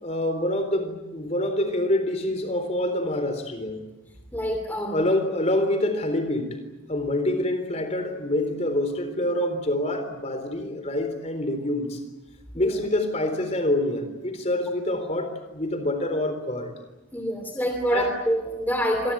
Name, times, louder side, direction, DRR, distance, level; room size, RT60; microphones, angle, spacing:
voice 1, 0.0-3.8 4.9-6.6 6.9-12.0 12.5-16.7 17.9-18.2, left 1 dB, 30° left, 8 dB, 3.9 m, -26 dB
voice 2, 4.3-5.1 12.5-12.8 17.1-19.1, equal, 10° left, 4 dB, 2.8 m, -26 dB
26.0 x 21.0 x 9.2 m, 1.0 s
head